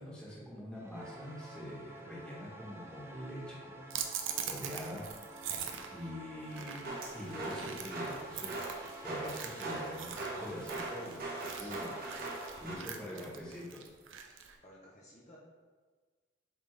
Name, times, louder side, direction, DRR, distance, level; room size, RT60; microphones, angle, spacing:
voice 1, 0.0-4.0 4.4-5.0 5.9-11.2 11.6-12.0 12.6-13.8, equal, 5° left, -6 dB, 1.5 m, -44 dB
sound 1, 0.7-12.6, right 2 dB, 15° right, 0.6 m, -50 dB
sound 2, 3.9-14.6, right 7 dB, 80° right, 0.6 m, -43 dB
sound 3, 6.8-12.8, right 2 dB, 50° right, 1.1 m, -41 dB
voice 2, 13.0-13.4 14.6-15.4, equal, 40° left, -5 dB, 1.0 m, -55 dB
7.6 x 3.8 x 3.4 m, 1.4 s
head